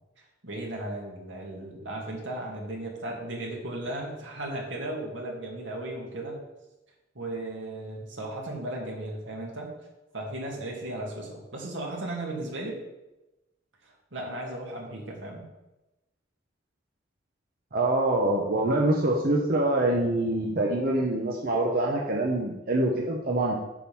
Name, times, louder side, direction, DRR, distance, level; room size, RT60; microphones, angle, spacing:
voice 1, 0.4-6.4 7.1-9.7 10.1-12.8 13.8-15.4, right 1 dB, 85° right, -2 dB, 2.4 m, -36 dB
voice 2, 17.7-23.5, right 1 dB, 55° right, -2 dB, 1.0 m, -25 dB
8.5 x 4.1 x 7.1 m, 1.0 s
head